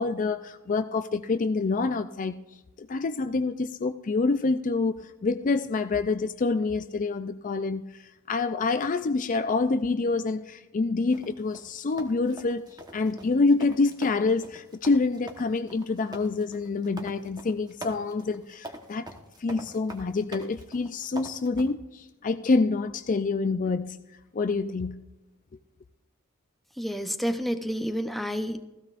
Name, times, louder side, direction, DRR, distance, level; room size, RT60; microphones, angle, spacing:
voice 1, 0.0-2.4 2.8-8.0 8.3-12.6 12.9-19.1 19.4-24.0 24.3-25.0, left 3 dB, 35° left, 0.4 m, -27 dB
sound 1, 11.1-21.7, right 1 dB, 20° right, 1.2 m, -44 dB
voice 2, 26.8-28.7, equal, ahead, 0.7 m, -29 dB
16.0 x 15.0 x 2.5 m
head